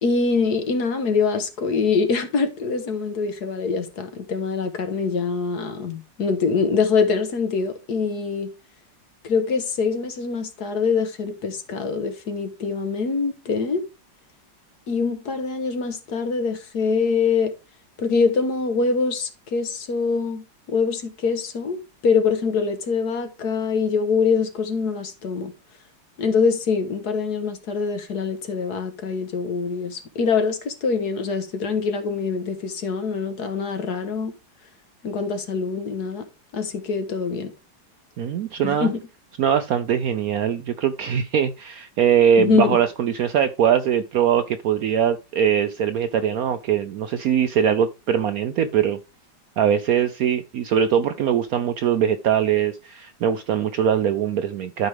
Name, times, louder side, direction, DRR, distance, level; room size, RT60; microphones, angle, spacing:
voice 1, 0.0-8.5 9.2-13.8 14.9-17.5 18.0-25.5 26.2-34.3 35.0-36.2 36.5-37.5 38.6-39.0 42.4-42.8, left 5 dB, 60° left, 1.6 m, -24 dB
voice 2, 38.2-38.9 39.4-49.0 49.6-54.9, right 8 dB, 70° right, 0.9 m, -21 dB
12.0 x 4.9 x 3.4 m
omnidirectional pair, 2.0 m